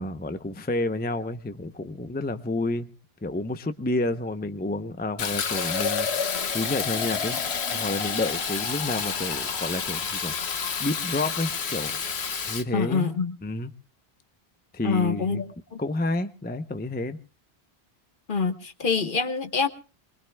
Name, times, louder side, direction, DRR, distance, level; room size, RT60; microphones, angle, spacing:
voice 1, 0.0-2.9 3.2-10.3 10.8-12.0 12.5-13.1 13.4-13.7 14.7-15.4 15.8-17.2, left 2 dB, 10° left, 10 dB, 0.6 m, -30 dB
Fill (with liquid), 5.2-12.6, left 6 dB, 85° left, 1.3 m, -29 dB
voice 2, 12.7-13.3 14.8-15.4 15.7-15.8 18.3-19.7, left 5 dB, 55° left, 9 dB, 1.3 m, -25 dB
24.0 x 22.0 x 2.2 m, 0.34 s
omnidirectional pair, 1.1 m